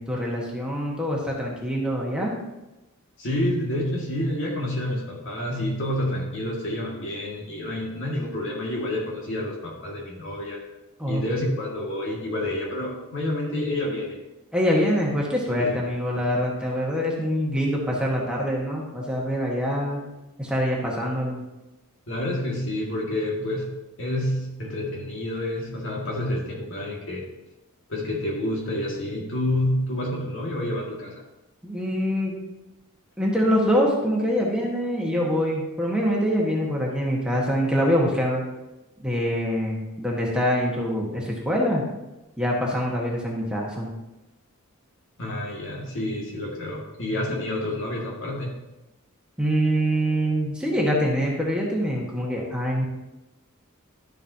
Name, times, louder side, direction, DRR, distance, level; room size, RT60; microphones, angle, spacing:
voice 1, 0.0-2.3 11.0-11.4 14.5-20.0 20.4-21.4 31.6-32.4 33.2-38.4 39.0-41.8 42.4-43.9 49.4-52.9, equal, 5° right, -3 dB, 1.4 m, -24 dB
voice 2, 3.2-10.6 11.1-14.2 15.6-15.8 22.1-23.7 24.0-27.2 27.9-31.1 45.2-48.5, left 1 dB, 60° left, -2 dB, 2.0 m, -28 dB
11.5 x 7.1 x 2.8 m, 1.0 s
head